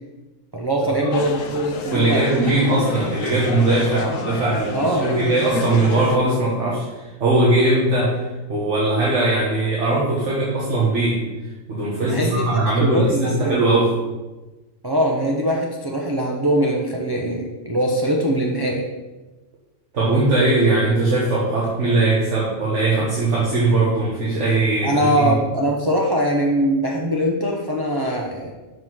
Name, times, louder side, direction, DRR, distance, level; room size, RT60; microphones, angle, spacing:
voice 1, 0.5-2.3 2.7-2.8 4.7-5.1 12.0-13.6 14.8-18.9 24.8-28.5, equal, 25° right, -1 dB, 0.6 m, -22 dB
sound 1, 1.1-6.2, left 4 dB, 75° left, 1.1 m, -30 dB
voice 2, 1.9-11.2 11.7-13.9 19.9-25.3, right 2 dB, 65° right, -6 dB, 1.6 m, -20 dB
5.8 x 5.3 x 6.1 m, 1.1 s
omnidirectional pair, 1.4 m